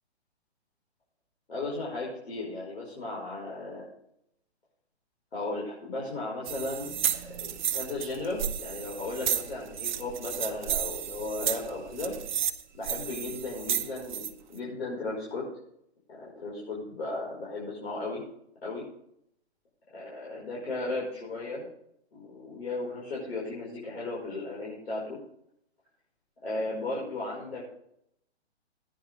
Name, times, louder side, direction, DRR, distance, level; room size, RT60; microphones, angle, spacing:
voice 1, 1.5-3.9 5.3-6.9 7.3-12.1 12.7-15.4 16.1-18.2 18.6-18.8 19.9-21.7 22.1-25.2 26.4-27.8, left 2 dB, 70° left, -5 dB, 5.3 m, -35 dB
sound 1, 6.4-14.3, right 9 dB, 45° right, 1.0 m, -32 dB
16.0 x 10.0 x 3.5 m, 0.75 s
hypercardioid pair, 140°, 33 cm